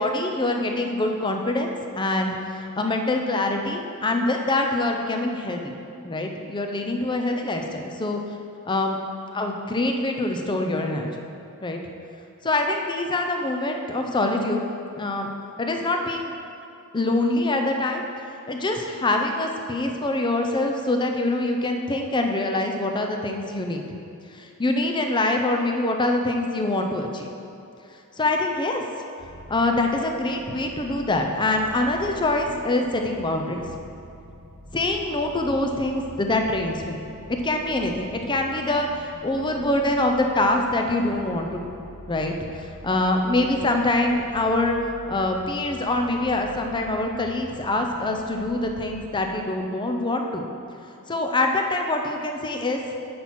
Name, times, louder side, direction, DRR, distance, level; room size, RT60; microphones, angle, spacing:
voice 1, 0.0-1.7 1.9-5.8 6.0-8.2 8.6-9.0 9.3-11.3 11.6-11.8 12.4-14.6 15.0-15.3 15.6-16.4 16.9-18.0 18.5-24.0 24.3-27.3 28.2-28.8 29.5-33.7 34.7-37.0 37.4-41.8 42.1-44.8 45.1-50.5 51.1-52.8, left 2 dB, 20° left, 3 dB, 0.6 m, -25 dB
sound 1, 29.2-49.1, equal, 70° right, 1.3 m, -45 dB
9.3 x 6.1 x 4.3 m, 2.6 s
head